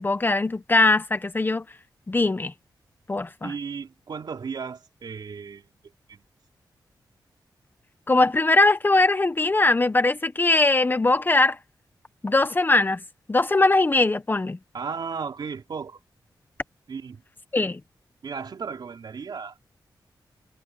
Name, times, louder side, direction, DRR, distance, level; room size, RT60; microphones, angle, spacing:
voice 1, 0.0-1.6 2.1-2.5 3.1-3.5 8.1-11.6 12.2-13.0 13.3-14.6 17.5-17.8, left 2 dB, 25° left, 1.2 m, -21 dB
voice 2, 3.4-5.7 6.1-6.2 14.7-16.0 16.9-17.2 18.2-19.6, right 5 dB, 65° right, 3.5 m, -35 dB
wide cardioid pair, 100°, 8 cm